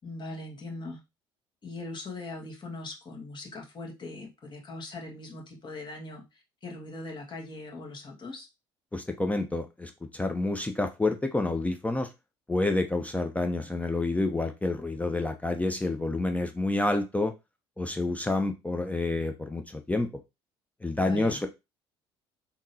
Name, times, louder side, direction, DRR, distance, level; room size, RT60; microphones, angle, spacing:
voice 1, 0.0-1.0 1.6-8.5 21.0-21.4, left 2 dB, 35° left, 0 dB, 1.6 m, -40 dB
voice 2, 8.9-12.1 12.5-17.3 17.8-20.1 20.8-21.5, left 2 dB, 10° left, 5 dB, 0.5 m, -28 dB
3.7 x 2.8 x 2.7 m, 0.24 s
hypercardioid pair, 65°, 13 cm